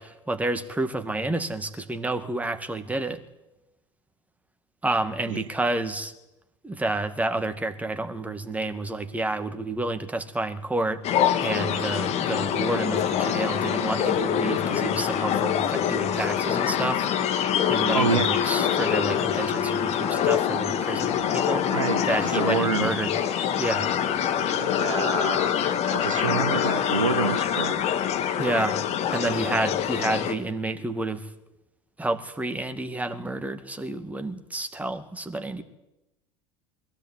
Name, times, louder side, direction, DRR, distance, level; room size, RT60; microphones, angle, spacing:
voice 1, 0.0-3.2 4.8-6.1 6.6-11.0 11.4-17.1 17.7-21.8 22.0-23.2 23.6-23.9 28.4-28.8 29.1-31.3 32.0-35.6, right 2 dB, 10° right, 9 dB, 2.2 m, -29 dB
sound 1, 11.0-30.3, left 9 dB, 40° left, 2.2 m, -25 dB
voice 2, 17.9-18.3 21.7-23.0 24.6-25.6 25.9-27.7, right 6 dB, 75° right, 11 dB, 1.6 m, -27 dB
22.0 x 16.5 x 9.7 m, 0.95 s
figure-of-eight pair, 70°, 16 cm